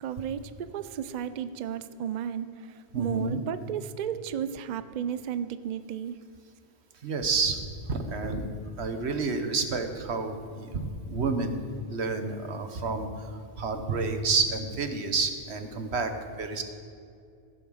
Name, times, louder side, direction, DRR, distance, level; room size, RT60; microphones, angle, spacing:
voice 1, 0.0-2.7 3.0-6.1, right 9 dB, 55° right, 12 dB, 0.5 m, -33 dB
voice 2, 2.9-3.4 7.0-7.6 7.9-8.5 8.8-11.6 11.9-13.3 13.6-16.6, right 4 dB, 85° right, 7 dB, 1.4 m, -29 dB
15.5 x 7.0 x 6.4 m, 2.4 s
omnidirectional pair, 1.1 m